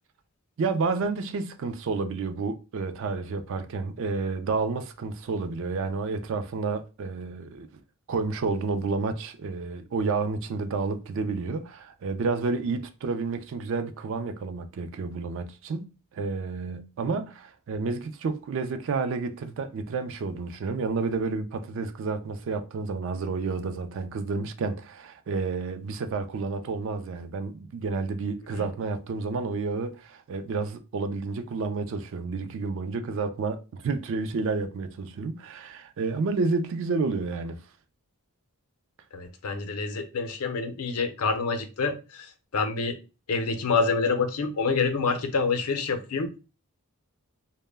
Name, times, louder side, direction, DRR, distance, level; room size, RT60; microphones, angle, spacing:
voice 1, 0.6-7.7 8.1-37.6, right 4 dB, 60° right, 0.3 m, -30 dB
voice 2, 39.1-42.3 42.5-42.9 43.3-46.3, left 4 dB, 80° left, 0.5 m, -27 dB
2.1 x 2.1 x 3.2 m
head